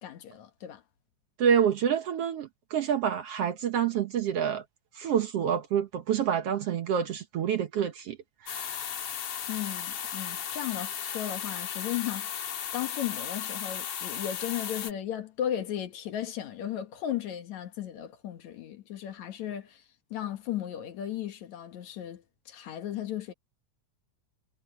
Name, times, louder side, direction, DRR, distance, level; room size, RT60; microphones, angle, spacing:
voice 1, 0.0-0.8 9.5-19.8 20.1-23.3, left 11 dB, 70° left, 2.7 m, -35 dB
voice 2, 1.4-4.6 5.0-8.2 8.4-8.7, right 8 dB, 65° right, 1.8 m, -27 dB
sound 1, 8.5-14.9, left 9 dB, 90° left, 3.5 m, -35 dB
omnidirectional pair, 3.5 m